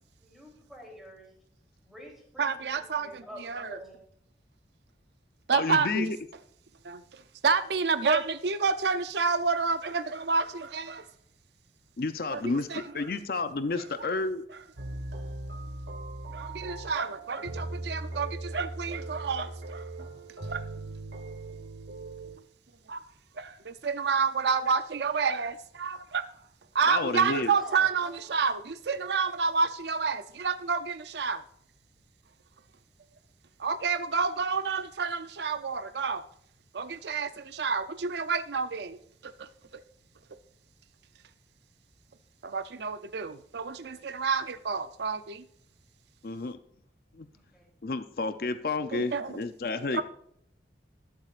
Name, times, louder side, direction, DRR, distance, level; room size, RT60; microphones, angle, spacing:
voice 1, 0.2-1.3 1.8-2.6 3.0-3.9 27.6-28.2 47.3-47.7, equal, ahead, 3.3 m, -48 dB
voice 2, 2.4-3.8 5.5-6.1 6.8-11.1 12.3-12.8 14.0-14.1 16.3-19.9 20.4-20.7 22.9-23.0 23.3-26.4 26.7-31.4 33.6-36.2 36.7-39.8 42.4-45.4 48.9-49.4 49.9-50.0, right 5 dB, 70° right, 0.5 m, -29 dB
voice 3, 5.5-6.2 12.0-12.7 12.9-14.4 26.9-27.5 46.2-46.6 47.1-47.3 47.8-50.0, left 3 dB, 55° left, 0.5 m, -30 dB
sound 1, 14.8-22.4, right 2 dB, 85° right, 1.4 m, -39 dB
20.0 x 7.5 x 2.5 m
head